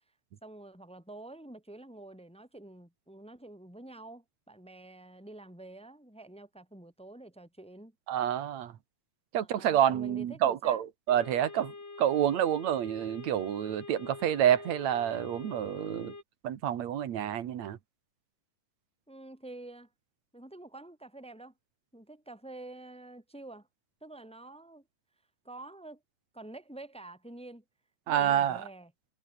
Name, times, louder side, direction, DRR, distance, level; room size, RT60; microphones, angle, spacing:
voice 1, 0.4-7.9 9.4-10.9 19.1-19.9 20.3-21.5 21.9-23.7 24.0-24.8 25.4-26.0 26.3-27.6 28.1-28.9, right 2 dB, ahead, 3.4 m, -48 dB
voice 2, 8.1-8.7 9.3-11.7 12.0-16.1 16.4-17.8 28.1-28.6, right 10 dB, 70° right, 2.8 m, -28 dB
sound 1, 11.1-16.2, left 4 dB, 60° left, 6.9 m, -45 dB
omnidirectional pair, 3.3 m